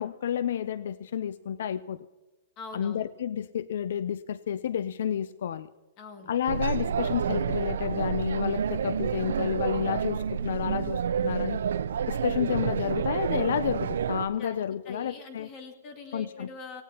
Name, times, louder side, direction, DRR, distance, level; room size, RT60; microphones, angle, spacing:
voice 1, 0.0-2.0 2.7-5.7 6.3-11.6 12.1-15.5 16.1-16.5, left 9 dB, 65° left, 16 dB, 0.4 m, -30 dB
voice 2, 2.6-3.0 6.0-6.3 14.4-16.8, left 3 dB, 25° left, 4 dB, 2.1 m, -44 dB
sound 1, 6.5-14.3, right 8 dB, 85° right, 0.5 m, -29 dB
27.0 x 18.0 x 2.9 m, 1.2 s
hypercardioid pair, 170°, 0 cm